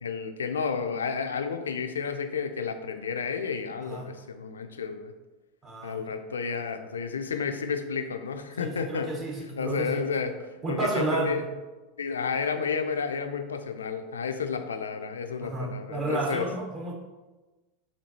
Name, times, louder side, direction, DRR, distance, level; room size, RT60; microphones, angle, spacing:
voice 1, 0.0-5.1 5.8-9.1 9.6-10.3 10.7-11.4 12.0-16.5, left 6 dB, 85° left, 7 dB, 0.3 m, -31 dB
voice 2, 5.6-6.2 8.6-10.1 10.6-11.4 15.4-16.9, right 2 dB, 30° right, -1 dB, 1.0 m, -31 dB
4.3 x 2.8 x 2.7 m, 1.2 s
hypercardioid pair, 90°, 0 cm